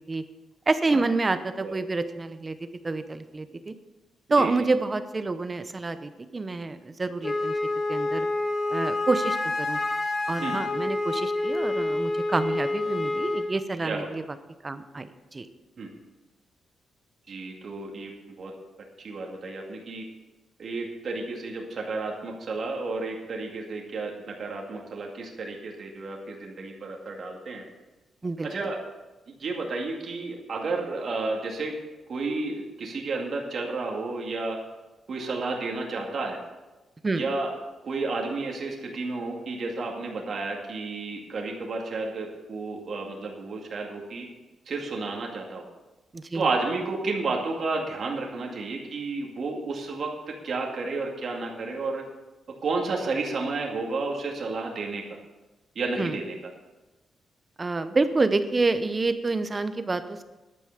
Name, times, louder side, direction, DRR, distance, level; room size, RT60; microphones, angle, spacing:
voice 1, 0.7-2.6 2.8-3.7 4.3-7.5 7.9-8.3 8.7-9.8 10.3-14.2 14.6-15.5 28.2-28.5 37.0-37.2 46.1-46.5 56.0-56.2 57.6-60.2, right 3 dB, 20° right, 11 dB, 0.8 m, -28 dB
Wind instrument woodwind instrument, 7.2-13.5, left 2 dB, 30° left, 1.6 m, -28 dB
voice 2, 17.3-18.1 18.4-18.5 19.0-20.0 20.6-27.6 28.4-28.8 29.4-31.7 32.1-34.6 35.1-36.4 37.2-37.5 37.8-44.3 44.7-45.6 46.3-50.1 50.4-52.0 52.6-55.0 55.8-56.4, right 3 dB, 50° right, 0 dB, 2.1 m, -31 dB
11.0 x 9.2 x 6.6 m, 1.1 s
wide cardioid pair, 145°, 0 cm